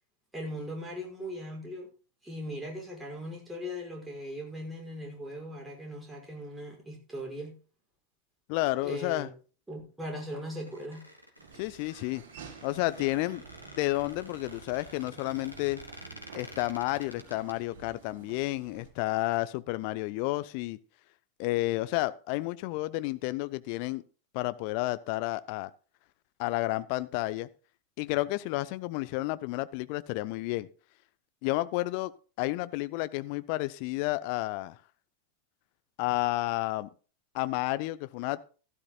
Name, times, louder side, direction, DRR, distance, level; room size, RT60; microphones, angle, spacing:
voice 1, 0.3-1.9 2.2-7.6 8.8-9.3 9.7-11.0, equal, 5° right, 5.7 m, -39 dB
voice 2, 8.5-9.3 11.6-12.2 12.6-13.4 13.8-15.8 16.3-20.8 21.4-24.0 24.3-25.7 26.4-27.5 28.0-30.7 31.4-32.1 32.4-34.8 36.0-36.9 37.3-38.4, left 19 dB, 45° left, 0.8 m, -31 dB
Squeak, 10.3-17.5, equal, 90° left, 2.7 m, -50 dB
Laughter / Walk footsteps, 11.4-18.9, right 7 dB, 50° right, 4.2 m, -51 dB
16.0 x 13.0 x 2.4 m
figure-of-eight pair, 90°, 0 cm